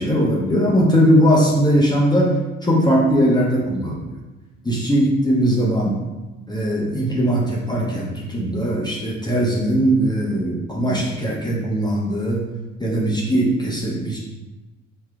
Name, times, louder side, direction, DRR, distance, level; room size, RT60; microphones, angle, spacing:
voice 1, 0.0-2.3 2.6-4.1 4.6-6.0 6.5-12.4 12.8-14.2, equal, 10° left, -4 dB, 1.1 m, -19 dB
5.7 x 3.2 x 2.4 m, 1.1 s
figure-of-eight pair, 45°, 41 cm